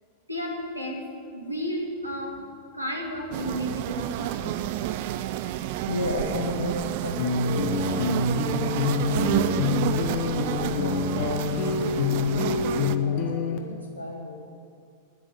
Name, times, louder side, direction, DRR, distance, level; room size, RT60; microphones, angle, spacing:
voice 1, 0.3-2.5 2.7-4.6, equal, 90° right, 0 dB, 1.9 m, -33 dB
sound 1, 3.3-13.0, right 12 dB, 50° right, 0.5 m, -30 dB
voice 2, 5.9-10.2 10.8-14.4, left 2 dB, 70° left, -3 dB, 1.4 m, -35 dB
sound 2, 7.2-13.6, left 5 dB, 45° left, 1.2 m, -26 dB
10.0 x 8.7 x 9.3 m, 2.4 s
figure-of-eight pair, 90°, 0 cm